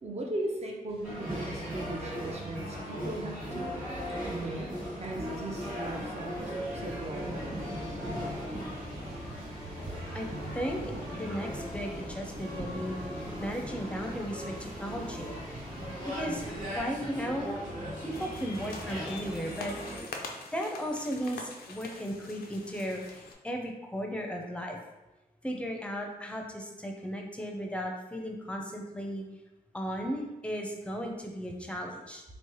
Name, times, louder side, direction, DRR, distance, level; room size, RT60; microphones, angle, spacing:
voice 1, 0.0-3.8 4.3-4.7 5.0-7.7 9.3-9.4 9.6-10.2, right 1 dB, 45° right, 0 dB, 0.6 m, -38 dB
Thunder, 0.9-16.9, equal, 90° right, 1.3 m, -45 dB
sound 1, 1.0-20.0, equal, 60° right, 1.5 m, -38 dB
voice 2, 10.5-15.3 15.6-15.7 16.1-16.5 16.7-17.5 18.0-19.9 20.5-24.8 25.4-29.2 29.7-32.2, equal, 5° left, 1 dB, 0.5 m, -36 dB
sound 2, 18.1-23.3, left 4 dB, 80° left, 0.4 m, -44 dB
3.1 x 2.0 x 3.0 m, 1.0 s
cardioid pair, 50°, 15 cm